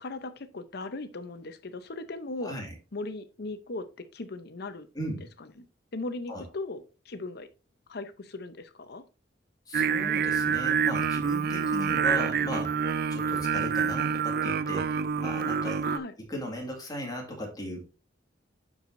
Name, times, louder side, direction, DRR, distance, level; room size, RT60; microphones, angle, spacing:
voice 1, 0.0-2.6 2.9-4.9 5.4-5.5 5.9-7.5 7.9-9.0 15.8-16.1, left 2 dB, 60° left, 0.8 m, -38 dB
voice 2, 2.4-2.7 4.9-5.3 6.3-6.4 9.7-12.8 13.1-15.8 16.2-17.8, equal, 20° left, 2.1 m, -37 dB
Singing, 9.7-16.0, right 6 dB, 55° right, 0.4 m, -27 dB
12.0 x 4.8 x 2.6 m
head